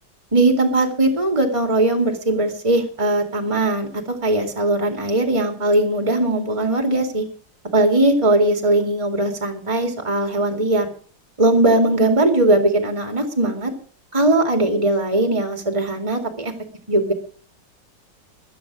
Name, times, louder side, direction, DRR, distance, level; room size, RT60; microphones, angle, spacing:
voice 1, 0.3-7.2 7.7-10.9 11.4-13.7 14.1-16.5 16.9-17.1, right 2 dB, 15° right, 6 dB, 2.5 m, -19 dB
15.5 x 11.0 x 6.1 m, 0.43 s
omnidirectional pair, 1.9 m